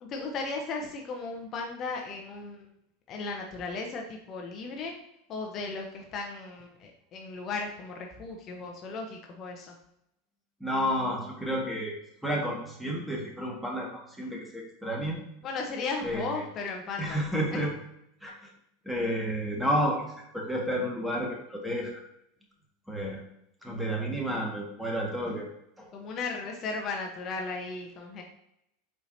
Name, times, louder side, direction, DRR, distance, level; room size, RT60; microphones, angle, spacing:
voice 1, 0.0-2.6 3.1-4.9 5.3-9.7 15.4-17.2 17.5-17.6 25.9-28.2, left 4 dB, 35° left, 1 dB, 0.9 m, -36 dB
voice 2, 10.6-12.0 12.2-15.2 16.0-16.4 17.0-17.7 18.2-18.5 18.8-20.1 20.3-22.0 22.9-23.2 23.6-25.5 25.8-25.9, equal, 5° right, -1 dB, 1.8 m, -31 dB
7.9 x 4.6 x 2.8 m, 0.78 s
figure-of-eight pair, 80°, 0 cm